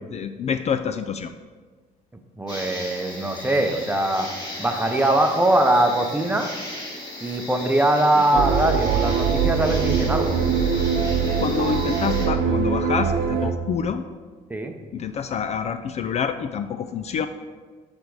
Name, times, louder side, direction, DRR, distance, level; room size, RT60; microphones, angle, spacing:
voice 1, 0.1-1.3 8.2-8.4 11.4-14.0 14.9-17.3, left 7 dB, 45° left, 9 dB, 0.4 m, -27 dB
voice 2, 2.4-4.3 4.6-6.5 7.2-10.4 14.5-14.7, right 1 dB, 10° right, 4 dB, 0.7 m, -21 dB
sound 1, 2.5-12.3, left 1 dB, 25° left, 2.3 m, -36 dB
sound 2, 8.3-13.5, right 6 dB, 70° right, 0.8 m, -22 dB
10.0 x 3.5 x 4.8 m, 1.4 s
cardioid pair, 115°, 16 cm